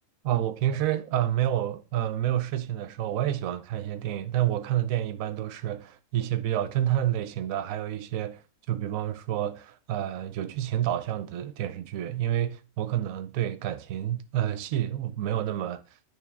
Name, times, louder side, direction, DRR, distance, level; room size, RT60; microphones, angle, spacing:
voice 1, 0.2-15.8, right 11 dB, 70° right, 1.0 m, -29 dB
9.2 x 3.5 x 3.5 m
omnidirectional pair, 1.5 m